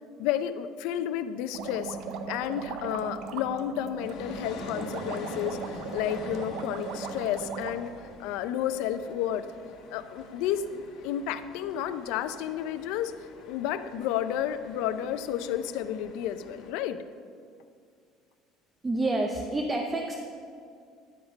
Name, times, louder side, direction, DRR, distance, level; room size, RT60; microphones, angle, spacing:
voice 1, 0.2-2.0 2.3-7.9 8.2-9.5 9.9-13.1 13.5-17.0, left 10 dB, 75° left, 11 dB, 0.4 m, -31 dB
sound 1, 1.5-7.7, right 5 dB, 65° right, 0.6 m, -38 dB
sound 2, 4.0-16.7, left 3 dB, 60° left, 1.1 m, -46 dB
voice 2, 18.8-20.1, right 2 dB, 15° right, 2 dB, 0.5 m, -28 dB
10.5 x 5.1 x 5.1 m, 2.3 s
cardioid pair, 150°, 0 cm